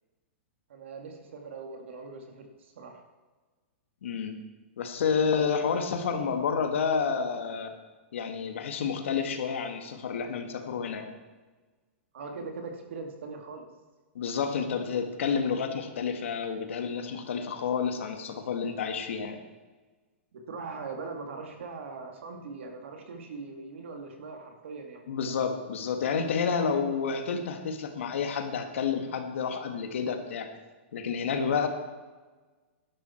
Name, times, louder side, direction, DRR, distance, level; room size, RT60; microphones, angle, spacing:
voice 1, 0.7-3.0 5.4-5.5 12.1-13.7 20.3-25.1 31.4-31.7, right 4 dB, 70° right, 4 dB, 2.3 m, -41 dB
voice 2, 4.0-4.4 4.8-7.7 8.1-11.1 14.2-19.4 25.1-30.5 30.9-31.7, left 6 dB, 75° left, 6 dB, 1.7 m, -29 dB
12.0 x 11.5 x 4.4 m, 1.3 s
supercardioid pair, 170°, 7 cm